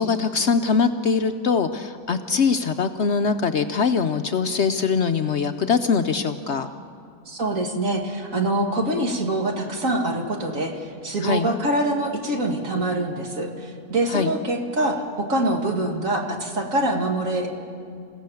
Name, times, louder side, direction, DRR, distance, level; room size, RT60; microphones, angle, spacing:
voice 1, 0.0-6.7 11.2-11.5 14.1-14.3, left 5 dB, 60° left, 7 dB, 0.8 m, -22 dB
voice 2, 7.3-17.5, right 1 dB, 60° right, 2 dB, 2.4 m, -25 dB
28.5 x 16.5 x 7.0 m, 2.4 s
omnidirectional pair, 1.6 m